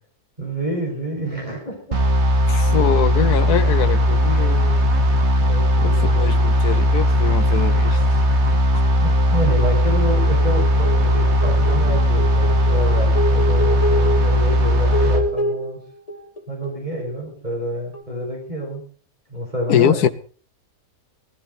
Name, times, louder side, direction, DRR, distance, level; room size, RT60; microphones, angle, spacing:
voice 1, 0.4-2.0 5.4-6.5 8.8-15.8 16.5-18.8 19.3-20.0, right 1 dB, 25° right, -2 dB, 6.6 m, -28 dB
sound 1, 1.9-15.2, equal, 45° right, 1.9 m, -17 dB
voice 2, 2.5-4.8 5.8-8.0 19.7-20.1, left 9 dB, 75° left, 11 dB, 1.5 m, -23 dB
sound 2, 10.6-17.0 17.9-18.0, right 1 dB, 20° left, 2.5 m, -27 dB
19.5 x 14.0 x 4.2 m, 0.40 s
omnidirectional pair, 1.7 m